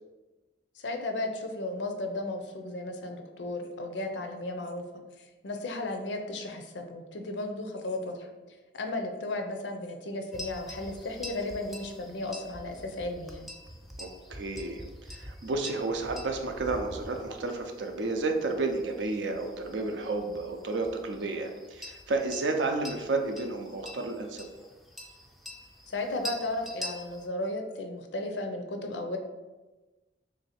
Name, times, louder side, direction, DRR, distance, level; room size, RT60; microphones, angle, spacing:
voice 1, 0.8-4.8 5.4-13.5 25.9-29.2, left 2 dB, 75° left, 5 dB, 0.5 m, -35 dB
sound 1, 10.3-27.3, left 1 dB, ahead, 0.3 m, -45 dB
voice 2, 14.0-14.8 15.1-24.5, right 3 dB, 75° right, 5 dB, 0.5 m, -31 dB
3.1 x 2.7 x 4.2 m, 1.2 s
head